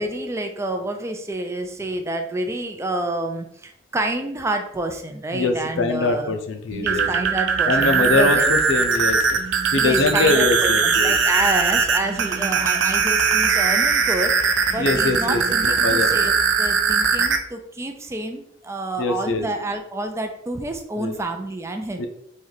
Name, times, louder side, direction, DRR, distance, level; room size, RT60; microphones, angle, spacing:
voice 1, 0.0-6.4 6.8-8.4 9.7-22.1, right 2 dB, 15° right, 5 dB, 0.3 m, -28 dB
voice 2, 5.3-7.1 7.7-9.4 9.7-11.2 14.8-16.1 19.0-19.5 21.0-21.1 22.0-22.1, left 3 dB, 90° left, 6 dB, 0.6 m, -23 dB
sound 1, 6.7-17.4, right 5 dB, 70° right, 0.5 m, -20 dB
3.1 x 3.1 x 3.9 m, 0.74 s
head